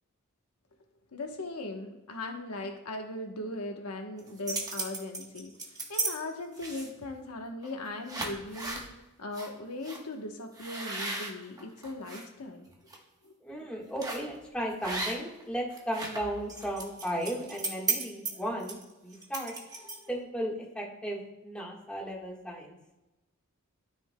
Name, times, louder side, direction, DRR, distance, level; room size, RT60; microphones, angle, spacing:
voice 1, 1.1-12.7 13.2-13.3, left 2 dB, 90° left, 3 dB, 1.0 m, -39 dB
sound 1, 4.2-6.1 6.6-7.0 7.6-7.8 8.1-8.9 9.3-9.5 9.8-10.0 10.6-12.2 12.7-13.0 14.0-14.3 14.8-15.4 15.7-20.2, right 3 dB, 15° right, 1.1 m, -35 dB
voice 2, 13.4-19.5 20.1-22.8, equal, 5° left, -3 dB, 1.4 m, -35 dB
13.0 x 5.4 x 2.2 m, 1.0 s
head